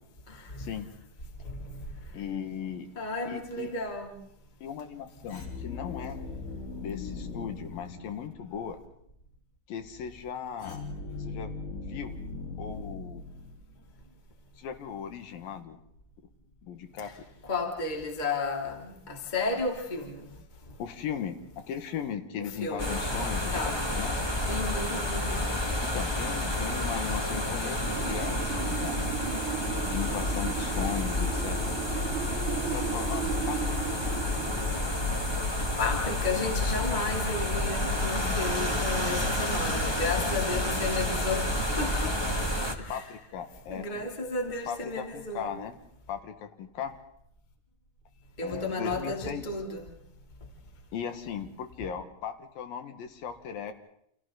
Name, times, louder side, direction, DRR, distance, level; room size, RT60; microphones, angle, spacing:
voice 1, 2.1-2.9 3.3-3.7 4.6-6.2 6.8-8.8 9.7-10.8 11.2-12.2 12.6-13.2 14.6-15.8 16.6-17.1 20.8-24.1 25.8-29.1 29.8-31.8 32.7-33.8 38.5-38.6 39.8-40.3 42.1-42.2 42.9-44.0 44.7-45.8 46.1-47.0 48.4-49.5 50.9-53.7, left 8 dB, 85° left, 3.4 m, -37 dB
voice 2, 2.9-4.1 17.0-17.1 17.4-20.3 22.6-23.0 23.5-23.8 24.5-25.5 35.8-42.1 42.8-43.0 43.7-45.5 48.4-49.9, left 3 dB, 15° left, 2.6 m, -33 dB
sound 1, 5.3-8.6 10.6-13.9, left 3 dB, 60° left, 5.5 m, -39 dB
sound 2, 22.8-42.7, left 1 dB, 30° left, 0.4 m, -30 dB
Wind, 27.8-36.5, right 11 dB, 45° right, 2.3 m, -37 dB
29.0 x 28.5 x 3.9 m
omnidirectional pair, 4.0 m